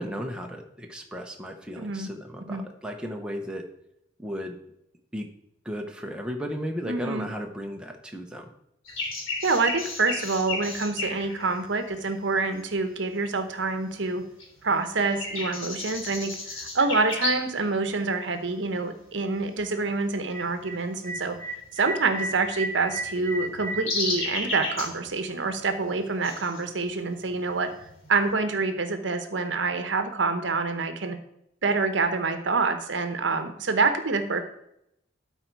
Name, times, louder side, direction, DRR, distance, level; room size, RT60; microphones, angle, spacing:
voice 1, 0.0-3.6 4.2-4.6 5.1-5.3 5.6-8.5, equal, 5° right, 1 dB, 0.8 m, -35 dB
voice 2, 1.8-2.1 2.4-2.6 6.9-7.3 9.4-14.2 14.6-27.7 28.1-31.2 31.6-34.4, right 3 dB, 65° right, 8 dB, 0.9 m, -27 dB
sound 1, 8.8-12.8 13.3-14.1 14.4-17.6 17.9-18.0 18.7-19.0 19.3-28.3, left 2 dB, 85° left, 3.0 m, -34 dB
12.0 x 4.5 x 4.6 m, 0.79 s
head